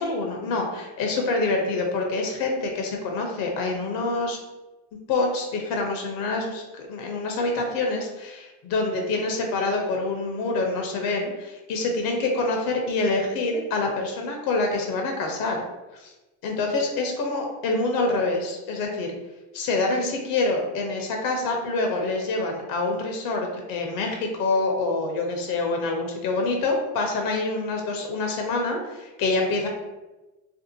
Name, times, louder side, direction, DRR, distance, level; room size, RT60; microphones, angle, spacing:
voice 1, 0.0-4.4 5.1-15.6 16.0-16.1 16.4-19.1 19.5-29.7, left 3 dB, 60° left, 2 dB, 0.6 m, -26 dB
2.6 x 2.3 x 2.6 m, 1.1 s
supercardioid pair, 115°, 38 cm